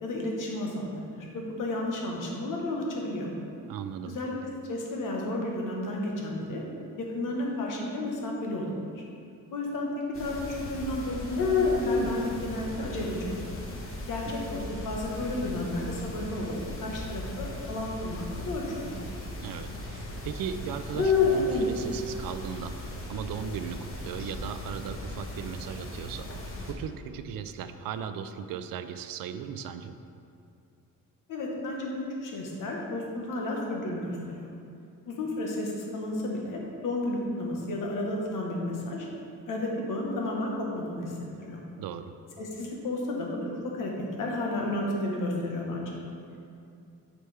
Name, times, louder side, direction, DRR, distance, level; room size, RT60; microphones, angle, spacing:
voice 1, 0.0-3.3 4.0-4.3 4.7-6.6 7.0-9.0 9.5-9.9 10.2-13.5 14.1-16.5 16.8-18.9 31.3-32.0 32.2-34.5 35.0-39.1 39.5-41.6 42.4-43.9 44.2-46.0, left 1 dB, 70° left, -1 dB, 1.3 m, -32 dB
voice 2, 3.7-4.2 14.3-14.4 19.4-26.3 26.7-29.9 41.8-42.1, right 7 dB, 85° right, 10 dB, 0.5 m, -37 dB
sound 1, 10.1-26.7, left 3 dB, 40° left, 1.1 m, -32 dB
8.7 x 5.0 x 3.4 m, 2.5 s
cardioid pair, 115°, 33 cm